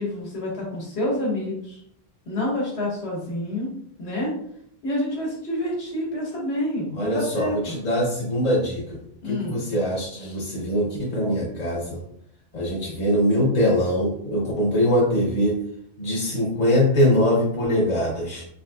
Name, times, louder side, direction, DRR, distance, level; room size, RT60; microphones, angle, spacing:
voice 1, 0.0-1.8 2.2-3.7 4.0-4.3 4.8-7.7 9.2-9.6 10.2-10.4, left 1 dB, 80° left, -4 dB, 1.4 m, -28 dB
voice 2, 6.9-9.0 9.2-12.0 12.5-15.6 16.0-18.4, equal, 45° left, -4 dB, 0.6 m, -22 dB
3.6 x 2.6 x 2.3 m, 0.71 s
omnidirectional pair, 1.1 m